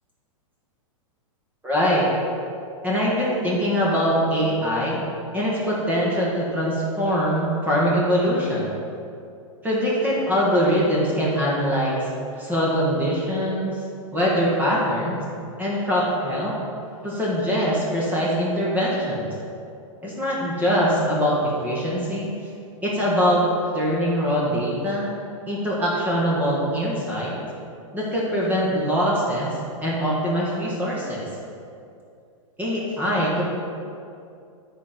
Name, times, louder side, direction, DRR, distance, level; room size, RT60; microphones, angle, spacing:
voice 1, 1.6-2.1 2.8-5.1 5.3-8.7 9.6-12.0 12.4-13.8 14.1-15.2 15.6-16.5 17.0-19.3 20.0-22.3 22.8-23.4 23.7-25.1 25.5-27.4 27.9-29.5 29.8-31.2 32.6-33.4, equal, 10° right, -5 dB, 1.7 m, -23 dB
10.0 x 4.6 x 5.2 m, 2.5 s
hypercardioid pair, 140°, 17 cm